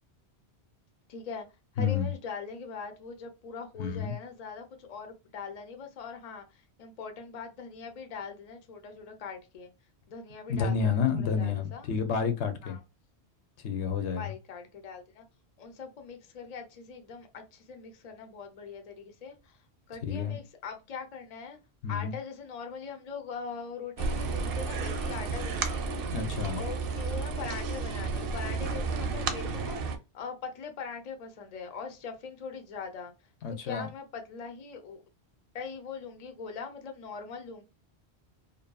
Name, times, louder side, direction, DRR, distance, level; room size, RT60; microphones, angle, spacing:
voice 1, 1.1-1.5 1.7-9.7 10.1-11.9 12.6-12.8 14.1-15.2 15.6-19.6 19.9-21.6 21.9-26.2 26.5-29.8 30.1-33.1 33.6-35.0 35.5-37.6, left 5 dB, 45° left, 0.6 m, -41 dB
voice 2, 1.8-2.1 3.8-4.1 10.5-12.8 13.6-14.3 20.0-20.4 21.8-22.1 26.1-26.6 33.4-33.9, left 6 dB, 90° left, 0.9 m, -29 dB
sound 1, 24.0-30.0, right 4 dB, 65° right, 0.7 m, -32 dB
2.6 x 2.5 x 2.2 m
omnidirectional pair, 1.1 m